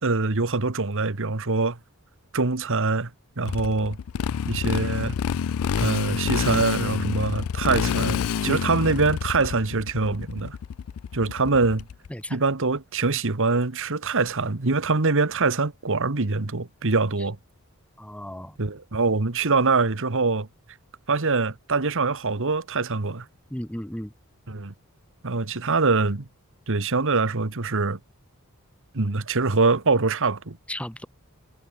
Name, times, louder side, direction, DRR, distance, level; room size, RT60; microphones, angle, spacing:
voice 1, 0.0-1.8 2.3-3.1 3.4-4.0 4.5-5.2 5.8-10.6 11.1-11.9 12.3-17.4 18.6-20.5 21.1-23.3 24.5-24.7 25.2-26.3 26.7-28.0 28.9-30.6, right 3 dB, 60° right, 1.4 m, -24 dB
Motorcycle, 3.4-12.1, left 7 dB, 70° left, 0.4 m, -28 dB
voice 2, 18.0-18.6 23.5-24.1 30.7-31.1, equal, 5° left, 1.6 m, -33 dB
head